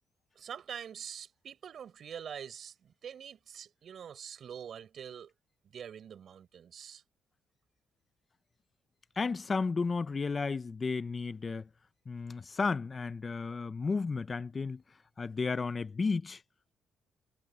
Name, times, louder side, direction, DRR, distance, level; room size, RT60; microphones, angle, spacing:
voice 1, 0.4-5.3 5.7-7.0, right 8 dB, 60° right, 4.6 m, -45 dB
voice 2, 9.2-11.7 12.1-14.8 15.2-16.4, left 4 dB, 35° left, 0.7 m, -33 dB
cardioid pair, 90°, 0 cm